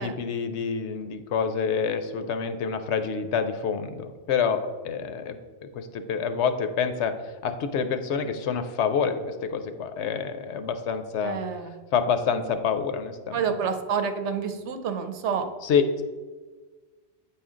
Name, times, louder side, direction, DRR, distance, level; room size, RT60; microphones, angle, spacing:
voice 1, 0.0-7.1 7.4-11.4 11.9-13.5 15.6-16.0, left 6 dB, 80° left, 9 dB, 0.9 m, -27 dB
voice 2, 11.2-11.8 13.3-15.5, right 6 dB, 80° right, 7 dB, 0.9 m, -28 dB
8.4 x 4.3 x 3.7 m, 1.4 s
omnidirectional pair, 1.2 m